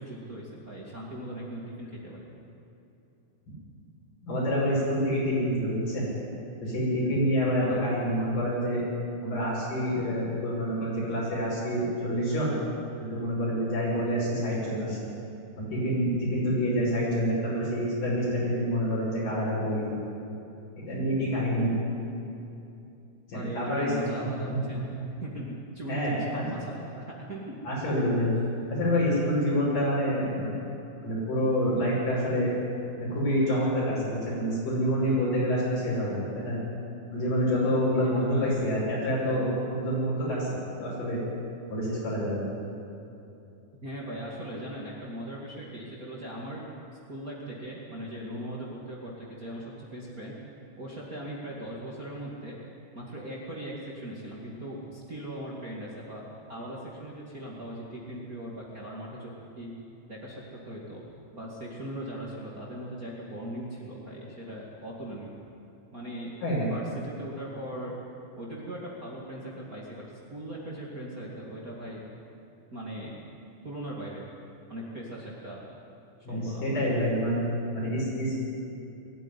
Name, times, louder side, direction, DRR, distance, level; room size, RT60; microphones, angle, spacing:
voice 1, 0.0-2.4 7.6-8.0 23.3-27.6 38.0-38.6 43.8-46.7 47.1-50.3 50.8-52.6 52.9-59.7 60.1-61.0 61.3-65.4 65.9-66.3 66.7-68.0 68.3-70.0 70.3-72.1 72.7-73.2 73.6-74.3 74.7-75.6 76.3-77.0, right 1 dB, 30° right, -4 dB, 2.5 m, -39 dB
voice 2, 4.2-6.1 6.6-8.8 9.2-12.6 13.0-15.0 15.6-19.9 20.9-21.7 23.3-23.9 24.5-24.6 25.9-26.4 27.6-28.3 28.7-30.5 31.0-32.5 33.0-36.6 37.1-40.5 40.8-41.2 41.7-42.5 66.4-66.7 76.3-77.5 77.7-78.4, equal, 80° left, -7 dB, 7.8 m, -27 dB
21.5 x 14.0 x 9.8 m, 2.8 s
omnidirectional pair, 3.8 m